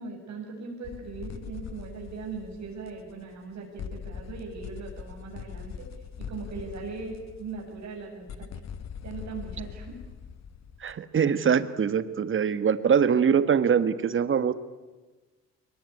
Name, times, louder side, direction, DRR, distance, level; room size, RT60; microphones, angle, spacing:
voice 1, 0.0-5.9 6.2-8.5 9.0-9.9, right 4 dB, 65° right, 0 dB, 7.5 m, -39 dB
sound 1, 0.8-3.5 3.8-11.0, left 7 dB, 60° left, 1.5 m, -42 dB
voice 2, 10.8-14.5, right 7 dB, 40° right, 14 dB, 1.4 m, -23 dB
22.5 x 20.5 x 9.7 m, 1.2 s
cardioid pair, 90°, 30 cm